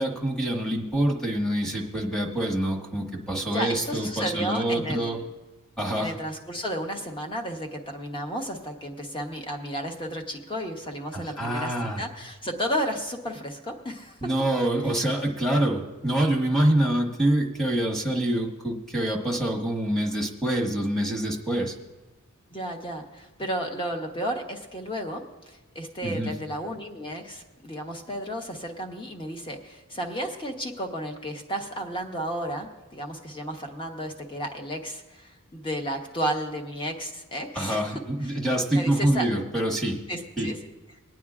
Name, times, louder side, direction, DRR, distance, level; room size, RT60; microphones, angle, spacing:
voice 1, 0.0-5.2 5.8-6.1 11.1-12.0 14.2-21.7 26.0-26.3 37.5-40.0 40.4-40.5, right 1 dB, ahead, -2 dB, 1.3 m, -26 dB
voice 2, 3.5-5.3 6.0-14.2 22.5-38.4 38.7-39.3 40.1-40.6, equal, 25° left, 3 dB, 1.0 m, -33 dB
24.5 x 9.2 x 2.4 m, 1.1 s
head